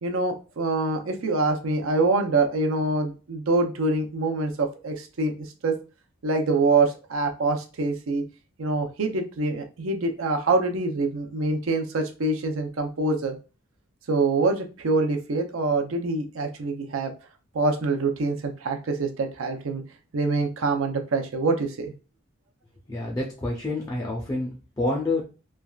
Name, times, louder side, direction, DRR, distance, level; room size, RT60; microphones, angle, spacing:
voice 1, 0.0-5.3 5.6-5.7 6.2-8.2 8.6-13.3 14.1-17.1 17.5-19.8 20.1-21.9, right 3 dB, 85° right, 4 dB, 0.5 m, -25 dB
voice 2, 22.9-25.3, left 2 dB, 20° left, -3 dB, 0.5 m, -28 dB
3.3 x 2.3 x 2.3 m, 0.33 s
head